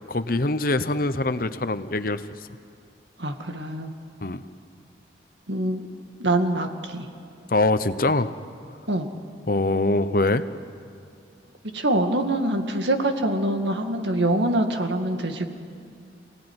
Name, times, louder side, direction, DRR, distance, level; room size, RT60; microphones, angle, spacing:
voice 1, 0.1-2.2 4.2-4.4 7.5-8.3 9.5-10.5, left 2 dB, 50° left, 12 dB, 0.9 m, -23 dB
voice 2, 3.2-3.9 5.5-5.8 6.2-7.1 8.9-9.1 11.7-15.5, right 1 dB, 75° right, 5 dB, 2.1 m, -24 dB
28.5 x 17.5 x 9.8 m, 2.4 s
head